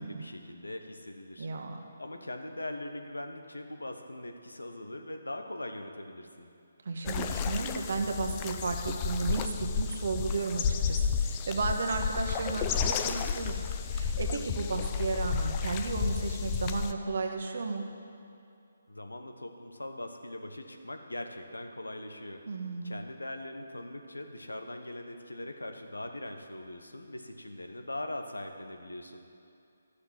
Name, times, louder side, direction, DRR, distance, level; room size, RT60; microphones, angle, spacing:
voice 1, 0.0-1.5 1.7-6.5 18.9-22.4 22.8-29.2, left 1 dB, 85° left, 5 dB, 1.1 m, -41 dB
voice 2, 1.4-1.9 6.8-13.6 13.9-17.8 22.5-23.0, right 3 dB, 60° right, 3 dB, 1.4 m, -33 dB
sound 1, 7.0-16.9, left 6 dB, 25° left, 0.5 m, -32 dB
11.5 x 6.6 x 7.6 m, 2.6 s
figure-of-eight pair, 145°, 0 cm